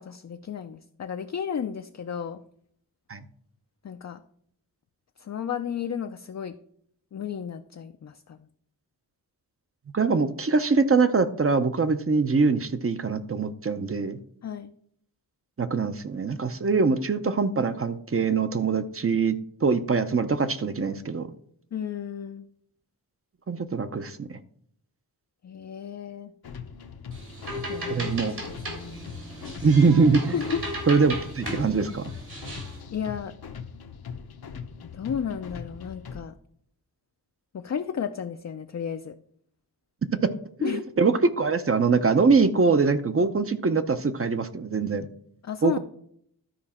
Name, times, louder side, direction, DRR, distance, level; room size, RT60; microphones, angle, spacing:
voice 1, 0.0-2.4 3.8-4.2 5.2-6.6 7.1-8.5 14.4-14.7 21.7-22.5 25.4-26.3 27.7-28.1 28.5-29.1 30.3-30.6 32.9-33.3 34.8-36.3 37.5-39.2 40.6-40.8 45.4-45.8, left 7 dB, 45° left, 7 dB, 0.5 m, -33 dB
voice 2, 9.9-14.2 15.6-19.4 19.6-21.3 23.5-24.4 27.9-28.4 29.6-30.3 30.9-32.1 40.2-40.3 40.6-45.1 45.6-45.8, right 4 dB, 35° right, 10 dB, 0.6 m, -23 dB
sound 1, 26.4-36.2, left 6 dB, 70° left, 0.8 m, -41 dB
sound 2, 27.1-32.8, right 1 dB, 80° right, 3.4 m, -36 dB
13.0 x 4.9 x 4.3 m, 0.66 s
wide cardioid pair, 80°, 38 cm